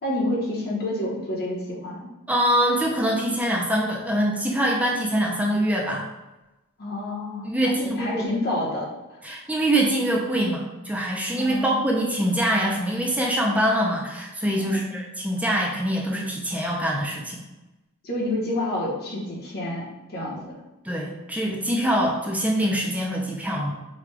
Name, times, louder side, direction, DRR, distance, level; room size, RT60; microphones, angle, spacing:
voice 1, 0.0-2.1 6.8-8.9 11.4-11.8 14.6-14.9 18.0-20.5, left 1 dB, 45° left, -4 dB, 1.1 m, -28 dB
voice 2, 2.3-6.0 7.4-8.2 9.2-17.4 20.8-23.7, right 1 dB, 5° right, -2 dB, 0.5 m, -24 dB
5.0 x 2.3 x 3.3 m, 1.0 s
head